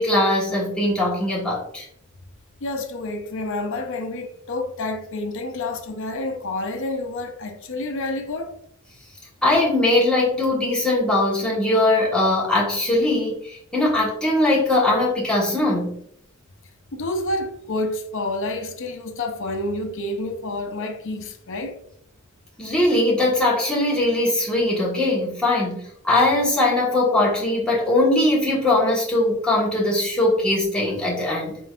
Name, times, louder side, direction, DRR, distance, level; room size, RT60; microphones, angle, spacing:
voice 1, 0.0-1.9 9.4-16.0 22.6-31.6, left 1 dB, 5° left, 1.4 m, -20 dB
voice 2, 2.6-8.6 16.9-21.8, left 2 dB, 60° left, 0.7 m, -29 dB
4.6 x 3.8 x 2.4 m
head